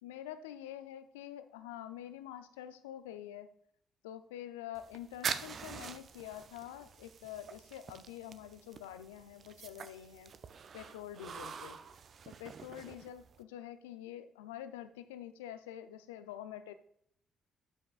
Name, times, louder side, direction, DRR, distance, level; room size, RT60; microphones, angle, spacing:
voice 1, 0.0-3.5 4.0-10.3 10.7-11.8 12.2-16.7, left 11 dB, 80° left, 11 dB, 0.4 m, -46 dB
sound 1, 4.7-13.4, right 6 dB, 50° right, 0.5 m, -45 dB
12.0 x 5.3 x 2.4 m, 0.70 s
figure-of-eight pair, 45°, 0 cm